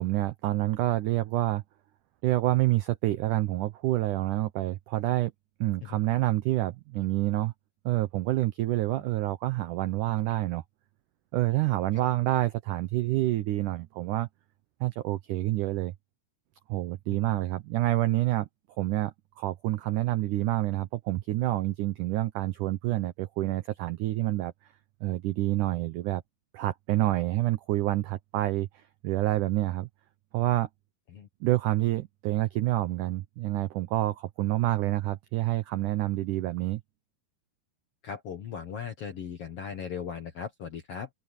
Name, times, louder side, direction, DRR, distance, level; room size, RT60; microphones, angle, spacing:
voice 1, 0.0-1.6 2.2-5.3 5.6-7.5 7.9-10.6 11.3-14.3 14.8-15.9 16.7-18.5 18.8-24.5 25.0-26.2 26.5-28.7 29.0-29.9 30.3-30.7 31.4-36.8, right 16 dB, 85° right, 1.8 m, -27 dB
voice 2, 38.0-41.1, left 7 dB, 60° left, 1.5 m, -38 dB
open air
omnidirectional pair, 4.6 m